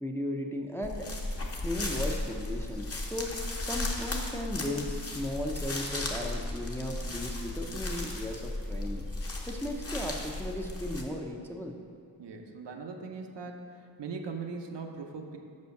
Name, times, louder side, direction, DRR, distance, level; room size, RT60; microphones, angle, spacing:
voice 1, 0.0-1.1 1.6-9.0 9.5-11.7, left 1 dB, 5° left, 1 dB, 0.5 m, -36 dB
sound 1, 0.8-11.0, left 2 dB, 35° left, 0.9 m, -35 dB
voice 2, 12.2-15.4, right 4 dB, 70° right, 3 dB, 0.8 m, -40 dB
5.5 x 5.3 x 6.5 m, 2.4 s
wide cardioid pair, 105°, 44 cm